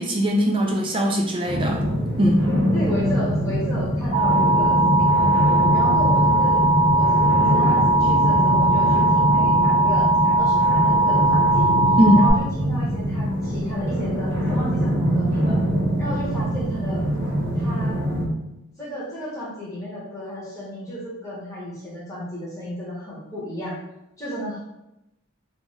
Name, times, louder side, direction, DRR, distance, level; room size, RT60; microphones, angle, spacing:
voice 1, 0.0-1.9 2.2-2.4 12.0-12.3, equal, 25° right, 1 dB, 0.3 m, -20 dB
sound 1, 1.4-18.2, equal, 70° right, 0.7 m, -23 dB
voice 2, 2.1-6.6 6.9-11.7 12.1-15.6 16.0-17.0 17.6-18.0 18.8-23.8 24.2-24.6, equal, 15° left, -8 dB, 0.9 m, -33 dB
Alarm, 4.1-12.3, right 2 dB, 60° left, 0.8 m, -19 dB
2.4 x 2.4 x 3.1 m, 0.88 s
head